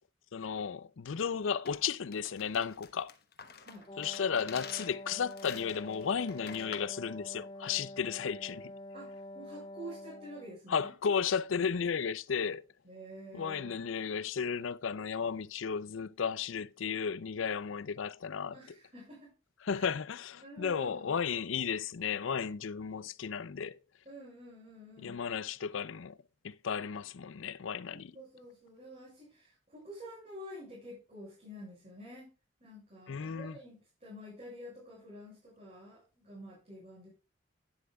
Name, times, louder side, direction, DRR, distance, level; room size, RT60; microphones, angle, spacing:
voice 1, 0.3-3.1 4.0-8.7 10.7-12.7 13.3-18.6 19.6-23.8 25.0-26.2 26.4-28.1 33.1-33.6, left 6 dB, 90° left, 0.5 m, -34 dB
sound 1, 1.6-7.0, left 6 dB, 50° left, 1.1 m, -49 dB
Wind instrument woodwind instrument, 3.9-10.6, left 1 dB, 25° left, 0.4 m, -46 dB
voice 2, 8.9-10.9 12.8-13.7 18.5-19.3 19.7-19.8 20.4-21.1 24.0-25.2 27.9-32.3 32.6-37.1, equal, 35° right, 6.3 m, -49 dB
11.5 x 9.8 x 2.3 m
head